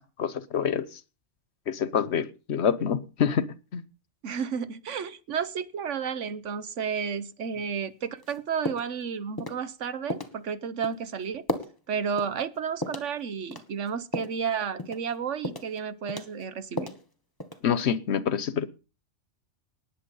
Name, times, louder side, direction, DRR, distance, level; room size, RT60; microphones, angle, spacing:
voice 1, 0.2-1.0 1.7-3.5 3.7-3.8 17.6-18.7, left 7 dB, 65° left, 1.1 m, -26 dB
voice 2, 4.2-11.4 11.9-17.0, right 7 dB, 80° right, 1.3 m, -32 dB
sound 1, 8.2-8.4 8.7-9.0 9.4-9.6 10.1-10.4 10.8-11.0 11.5-11.8 12.2-12.3 12.8-13.1 13.5-14.4 14.8-15.1 15.4-15.8 16.1-17.0 17.4-17.8, equal, 20° left, 1.4 m, -34 dB
19.0 x 7.7 x 5.5 m
omnidirectional pair, 1.2 m